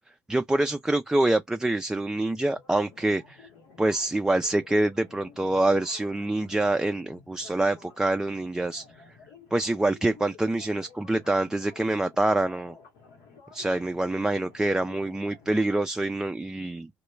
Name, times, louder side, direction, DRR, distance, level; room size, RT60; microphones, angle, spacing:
voice 1, 0.3-3.5 3.8-8.8 9.5-12.7 13.5-16.9, right 2 dB, 10° right, 0.3 m, -26 dB
sound 1, 2.5-15.6, left 5 dB, 80° left, 0.9 m, -52 dB
2.2 x 2.1 x 3.1 m
hypercardioid pair, 60°, 6 cm